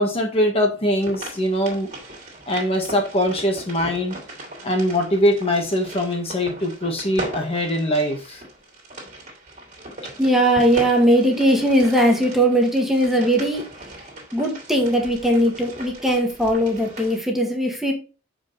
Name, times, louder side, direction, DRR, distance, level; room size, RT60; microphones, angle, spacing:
voice 1, 0.0-1.9 2.5-4.2 4.6-8.4, equal, 30° left, 2 dB, 1.5 m, -22 dB
sound 1, 1.0-17.2, right 1 dB, 40° right, 2.5 m, -38 dB
voice 2, 10.2-13.6 14.3-17.9, equal, ahead, 0 dB, 1.6 m, -19 dB
7.1 x 5.1 x 3.9 m, 0.33 s
head